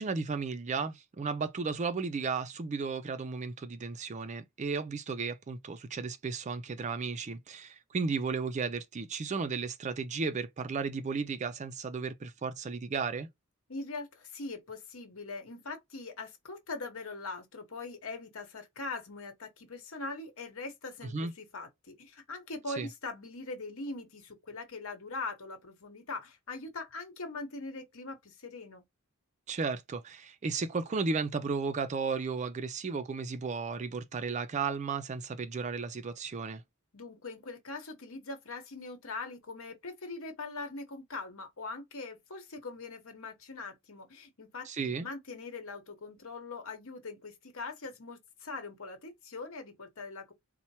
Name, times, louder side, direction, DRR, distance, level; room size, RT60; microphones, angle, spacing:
voice 1, 0.0-13.3 21.1-21.3 22.8-22.9 29.5-36.6 44.7-45.1, right 4 dB, 35° right, 0.4 m, -34 dB
voice 2, 13.7-28.8 36.9-50.3, left 3 dB, 65° left, 1.1 m, -42 dB
4.3 x 2.1 x 2.8 m
head